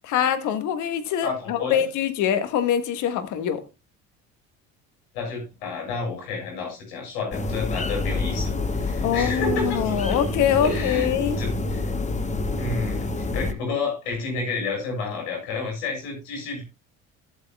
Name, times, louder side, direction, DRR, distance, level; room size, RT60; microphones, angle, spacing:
voice 1, 0.0-3.6 9.0-11.4, left 9 dB, 70° left, 1.5 m, -24 dB
voice 2, 1.2-1.9 5.1-10.2 10.6-11.1 11.4-11.8 12.6-16.6, left 3 dB, 90° left, 6.9 m, -30 dB
sound 1, 7.3-13.5, left 2 dB, 20° left, 1.1 m, -27 dB
14.5 x 8.2 x 2.2 m
supercardioid pair, 80°, 31 cm